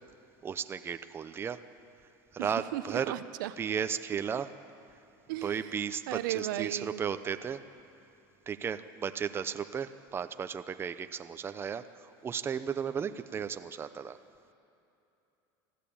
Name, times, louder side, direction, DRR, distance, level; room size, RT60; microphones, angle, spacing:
voice 1, 0.4-1.6 2.3-3.1 3.6-4.5 5.4-7.6 8.5-14.2, right 7 dB, 20° right, 10 dB, 0.7 m, -34 dB
voice 2, 2.4-3.5 5.3-5.6 6.1-7.0, right 14 dB, 90° right, 12 dB, 0.8 m, -35 dB
21.0 x 14.5 x 8.7 m, 2.8 s
supercardioid pair, 130°, 10 cm